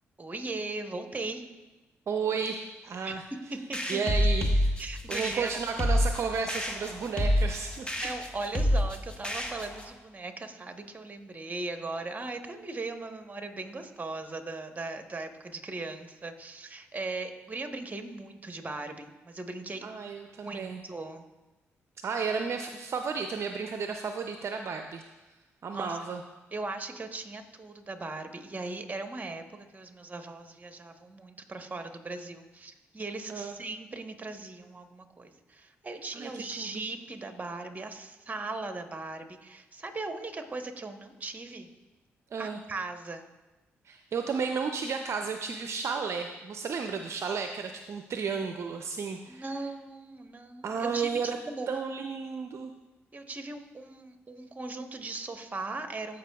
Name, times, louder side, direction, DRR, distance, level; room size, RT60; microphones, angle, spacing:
voice 1, 0.2-1.5 3.0-3.1 3.7-4.0 4.8-5.6 8.0-19.9 20.4-21.2 25.7-26.0 26.5-41.7 42.4-43.3 49.3-51.7 53.1-56.2, right 3 dB, 30° right, 6 dB, 1.0 m, -38 dB
voice 2, 2.1-3.2 3.9-4.7 5.1-7.9 19.8-20.8 22.0-25.0 25.6-26.2 33.3-33.5 36.1-36.8 42.3-42.6 43.9-49.4 50.6-51.4 51.7-52.7, right 5 dB, 55° right, 5 dB, 0.5 m, -33 dB
sound 1, 3.7-9.9, equal, 20° left, 1.2 m, -28 dB
14.0 x 5.3 x 2.3 m, 1.1 s
supercardioid pair, 50°, 6 cm